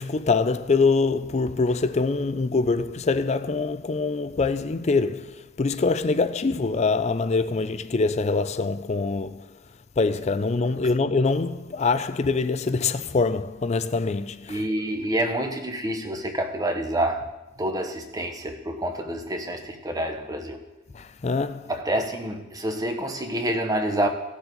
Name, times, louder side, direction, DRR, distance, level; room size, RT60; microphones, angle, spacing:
voice 1, 0.0-9.6 10.0-14.6 20.9-21.7, left 4 dB, 35° left, 0.4 m, -24 dB
voice 2, 14.5-17.2 17.6-20.6 21.7-24.1, right 1 dB, 20° right, 1.0 m, -27 dB
17.0 x 6.9 x 3.9 m
head